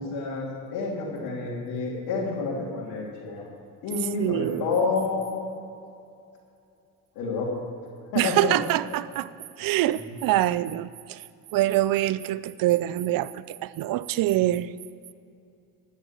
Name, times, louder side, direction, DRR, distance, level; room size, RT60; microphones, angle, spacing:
voice 1, 0.0-3.5 3.8-5.4 7.1-7.6 8.1-8.6, left 4 dB, 75° left, 3.2 m, -29 dB
voice 2, 4.2-4.7 8.2-9.3 9.6-11.2 11.5-14.7, right 14 dB, 60° right, 0.6 m, -25 dB
14.5 x 7.3 x 7.5 m
supercardioid pair, 75°, 39 cm